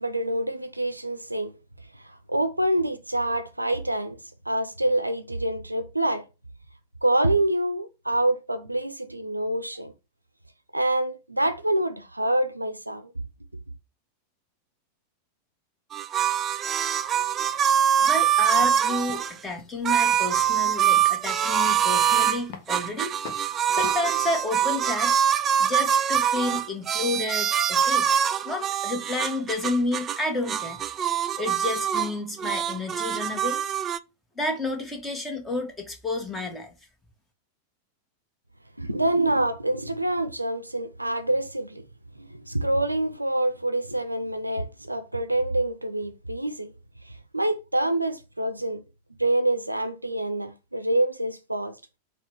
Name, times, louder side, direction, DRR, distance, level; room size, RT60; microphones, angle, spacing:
voice 1, 0.0-1.5 2.3-4.2 4.5-6.2 7.0-9.9 10.7-13.0 38.8-41.8 42.2-46.7 47.3-48.8 49.2-51.7, right 1 dB, 90° right, 0.5 m, -26 dB
sound 1, 15.9-19.3 19.9-22.4 22.7-30.2 30.5-32.1 32.4-34.0, right 9 dB, 30° right, 0.3 m, -24 dB
voice 2, 18.0-23.1 23.7-25.2 25.6-28.1 28.4-30.8 31.4-33.6 34.4-36.7, left 2 dB, 10° left, 1.5 m, -30 dB
sound 2, 18.5-24.1, left 6 dB, 50° left, 0.9 m, -45 dB
4.5 x 2.4 x 4.4 m
figure-of-eight pair, 90°, 0 cm